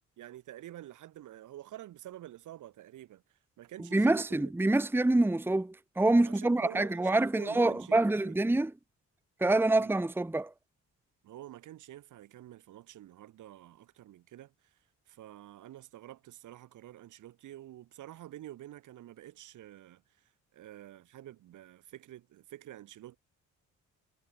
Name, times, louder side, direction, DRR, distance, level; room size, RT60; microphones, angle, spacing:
voice 1, 0.2-4.5 6.2-8.6 9.8-9.9 11.2-14.8 15.1-23.2, right 13 dB, 80° right, 6.1 m, -49 dB
voice 2, 3.9-8.7 9.4-10.5, right 2 dB, 5° right, 1.0 m, -26 dB
cardioid pair, 90°, 30 cm